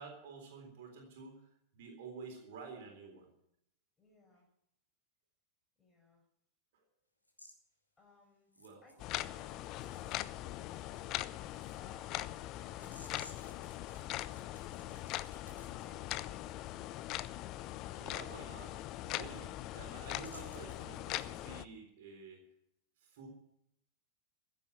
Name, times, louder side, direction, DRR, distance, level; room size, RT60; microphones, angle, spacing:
voice 1, 0.0-1.5 1.7-3.3 6.7-6.8 8.6-8.8 17.9-22.4 23.0-23.3, right 5 dB, 55° right, 2 dB, 3.8 m, -50 dB
voice 2, 4.0-4.5 5.8-6.2 8.0-8.5 8.8-14.3 14.7-16.9, left 2 dB, 15° left, 1 dB, 5.9 m, -63 dB
sound 1, 7.2-7.5 8.5-10.4 10.7-15.8 18.3-18.4 18.8-18.9 19.2-19.6 19.9-20.9, left 1 dB, 85° left, 2.7 m, -59 dB
sound 2, 9.0-21.7, left 15 dB, 40° left, 0.5 m, -41 dB
15.0 x 7.9 x 9.3 m, 0.77 s
figure-of-eight pair, 90°, 0 cm